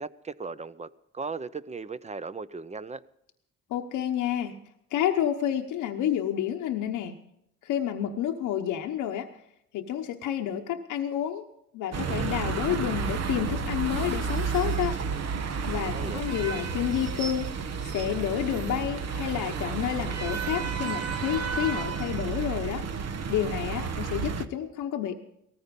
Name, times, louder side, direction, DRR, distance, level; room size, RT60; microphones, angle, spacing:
voice 1, 0.0-3.0 15.9-16.2, right 4 dB, 25° right, 0.8 m, -37 dB
voice 2, 3.7-4.5 4.9-7.1 7.6-9.3 9.7-11.4 11.7-15.0 15.7-17.4 17.8-22.8 23.3-25.2, left 10 dB, 90° left, 1.1 m, -29 dB
sound 1, 11.9-24.5, right 5 dB, 55° right, 1.3 m, -31 dB
18.5 x 14.5 x 5.3 m
cardioid pair, 90°, 30 cm